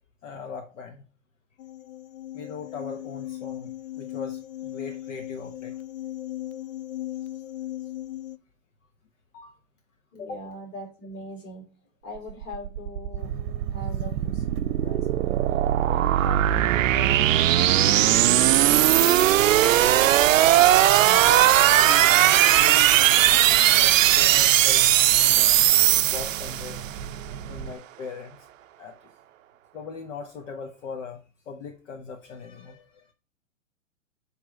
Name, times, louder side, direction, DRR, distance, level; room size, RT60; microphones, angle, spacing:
voice 1, 0.2-1.1 2.3-5.8 9.3-9.6 10.2-10.4 20.3-22.9 23.7-25.7 26.0-26.8 27.5-28.5 28.8-29.1 29.7-31.2 31.4-33.1, left 5 dB, 65° left, 4 dB, 1.3 m, -39 dB
sound 1, 1.6-8.4, left 14 dB, 85° left, 0.5 m, -37 dB
voice 2, 10.1-11.6 12.0-13.3 13.7-15.4 15.9-18.7 23.3-23.4, left 1 dB, 30° left, -1 dB, 4.3 m, -41 dB
sound 2, 12.3-26.9, right 13 dB, 70° right, 0.5 m, -19 dB
sound 3, 13.2-27.7, right 7 dB, 40° right, 0.8 m, -37 dB
7.1 x 3.4 x 5.8 m, 0.34 s
hypercardioid pair, 130°, 40 cm